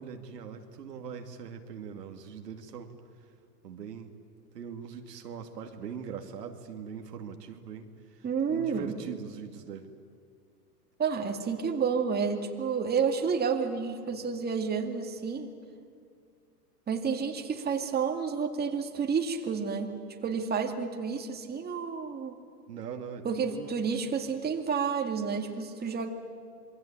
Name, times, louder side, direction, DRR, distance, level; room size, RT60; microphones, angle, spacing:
voice 1, 0.0-2.9 3.6-4.1 4.5-7.9 8.5-9.9 22.7-23.8 25.8-25.9, right 7 dB, 85° right, 5 dB, 2.5 m, -41 dB
voice 2, 8.2-9.0 11.0-15.5 16.9-19.9 20.2-22.4 23.2-26.1, right 6 dB, 20° right, 4 dB, 2.3 m, -30 dB
27.0 x 22.5 x 8.9 m, 2.2 s
hypercardioid pair, 115°, 47 cm